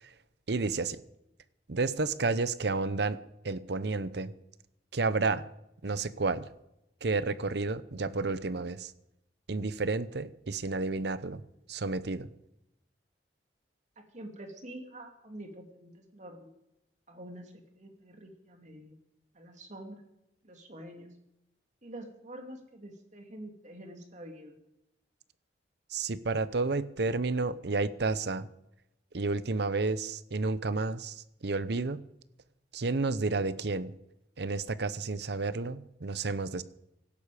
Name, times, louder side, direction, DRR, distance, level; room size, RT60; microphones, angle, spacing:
voice 1, 0.5-1.0 1.7-3.2 3.4-4.3 4.9-5.5 5.8-6.5 7.0-8.9 9.5-11.4 11.7-12.3 25.9-28.5 29.1-32.0 32.7-33.9 34.4-36.6, right 3 dB, 65° right, 15 dB, 0.8 m, -31 dB
voice 2, 14.0-16.5 17.1-18.9 19.3-20.0 20.4-21.1 21.8-24.6, right 1 dB, 40° right, 3 dB, 2.6 m, -46 dB
17.0 x 12.0 x 5.0 m, 0.87 s
head